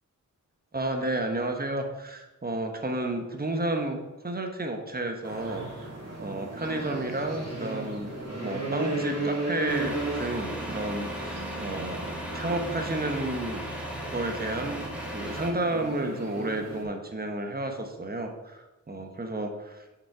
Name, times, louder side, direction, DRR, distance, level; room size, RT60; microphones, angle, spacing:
voice 1, 0.7-4.0 4.2-5.9 6.2-8.1 8.4-13.6 14.1-19.8, right 2 dB, 30° right, 4 dB, 1.1 m, -31 dB
sound 1, 5.2-16.8, right 2 dB, 60° right, 2.8 m, -35 dB
Truck, 9.7-15.5, equal, 5° right, 1.6 m, -37 dB
7.2 x 5.3 x 4.8 m, 1.1 s
wide cardioid pair, 105°, 31 cm